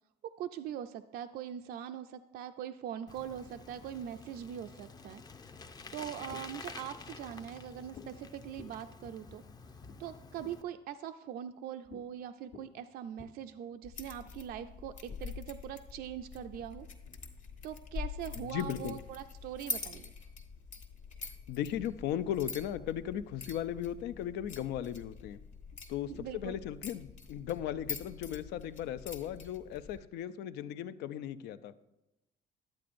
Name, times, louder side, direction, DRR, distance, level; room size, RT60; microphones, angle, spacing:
voice 1, 0.2-5.2 5.9-9.4 10.0-16.9 17.6-20.1 26.1-26.6, right 10 dB, 65° right, 8 dB, 0.4 m, -42 dB
Bicycle, 3.1-10.6, left 4 dB, 25° left, 0.5 m, -50 dB
sound 1, 6.3-6.8 8.0-8.2 8.6-10.8 11.8-12.1 12.4-13.3 14.2-14.4 15.1-18.4 19.1-19.7 20.2-20.3 20.5-22.3 22.9-23.8, left 5 dB, 65° left, 1.2 m, -56 dB
sound 2, 13.8-30.0, left 4 dB, 45° left, 1.1 m, -45 dB
voice 2, 18.5-19.0 21.5-25.4 25.9-31.7, left 10 dB, 80° left, 14 dB, 0.5 m, -37 dB
11.5 x 8.5 x 2.5 m, 0.95 s
cardioid pair, 110°, 17 cm